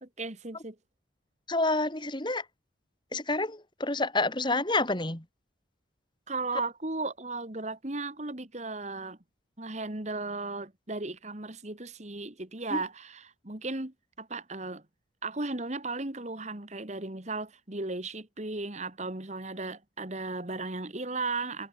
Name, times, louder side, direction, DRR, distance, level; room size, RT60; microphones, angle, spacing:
voice 1, 0.0-0.8 6.3-9.2 9.6-14.8 15.2-21.7, right 3 dB, 35° right, 1.7 m, -36 dB
voice 2, 1.5-2.4 3.1-5.2 12.7-12.8, left 2 dB, 25° left, 2.4 m, -28 dB
head